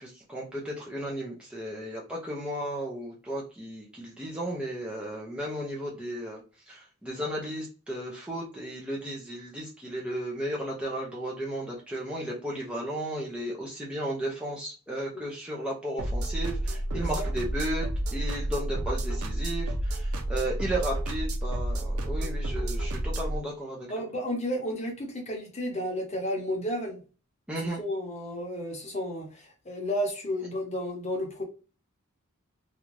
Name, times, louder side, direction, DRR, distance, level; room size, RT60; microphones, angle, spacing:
voice 1, 0.0-24.0 27.5-27.8, right 1 dB, 5° right, 0.5 m, -34 dB
sound 1, 16.0-23.4, right 1 dB, 90° right, 0.5 m, -30 dB
voice 2, 16.9-17.2 23.9-27.0 27.8-31.4, equal, 30° left, 0.8 m, -32 dB
2.6 x 2.3 x 3.1 m
head